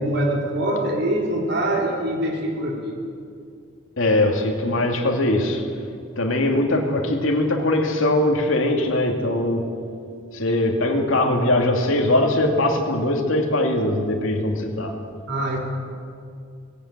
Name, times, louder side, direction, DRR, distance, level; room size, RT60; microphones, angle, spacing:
voice 1, 0.0-3.0 15.3-15.6, right 1 dB, 55° right, -1 dB, 3.4 m, -24 dB
voice 2, 4.0-5.7 6.2-9.7 10.3-14.9, left 1 dB, 80° left, 2 dB, 2.5 m, -21 dB
19.5 x 16.0 x 9.0 m, 2.4 s
head